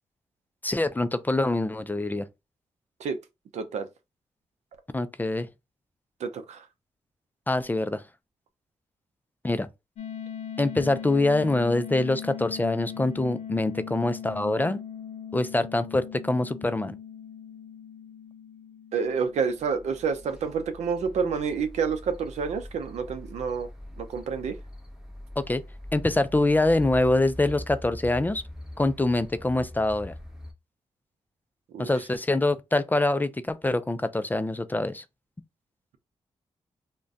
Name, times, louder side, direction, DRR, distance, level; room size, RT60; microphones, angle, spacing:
voice 1, 0.6-2.3 4.9-5.5 7.5-8.0 9.4-9.7 10.6-14.8 15.3-16.9 25.4-25.6 25.9-28.4 28.8-30.1 31.8-35.0, left 2 dB, 15° left, 0.4 m, -25 dB
voice 2, 3.5-3.9 6.2-6.6 18.9-23.7 24.0-24.6 31.7-31.9, right 6 dB, 80° right, 0.5 m, -29 dB
sound 1, 10.0-20.7, left 8 dB, 80° left, 0.6 m, -40 dB
sound 2, 19.4-30.5, left 1 dB, 5° right, 0.9 m, -42 dB
2.4 x 2.2 x 3.4 m
cardioid pair, 50°, 11 cm